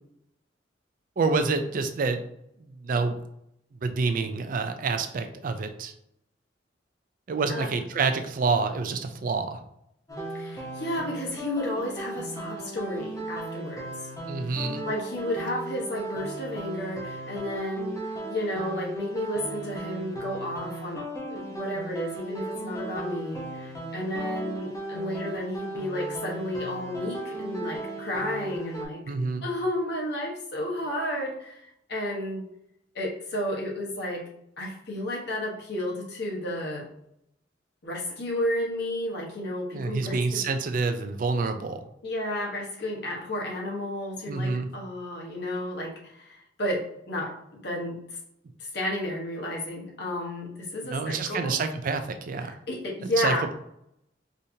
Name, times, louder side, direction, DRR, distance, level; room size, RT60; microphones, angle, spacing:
voice 1, 1.2-2.2 2.6-3.2 3.8-5.9 7.3-9.6 14.2-14.9 29.0-29.5 39.7-41.8 44.3-44.7 50.8-52.6 53.2-53.6, right 4 dB, 50° right, 8 dB, 0.4 m, -28 dB
sound 1, 10.1-28.8, right 2 dB, 20° left, 0.9 m, -36 dB
voice 2, 10.3-13.8 14.8-29.0 29.4-32.4 32.9-34.2 34.6-36.9 37.8-40.5 42.0-47.3 47.6-48.0 48.6-51.6 52.4-53.5, left 1 dB, 65° left, -2 dB, 1.2 m, -32 dB
5.0 x 2.7 x 2.7 m, 0.76 s
head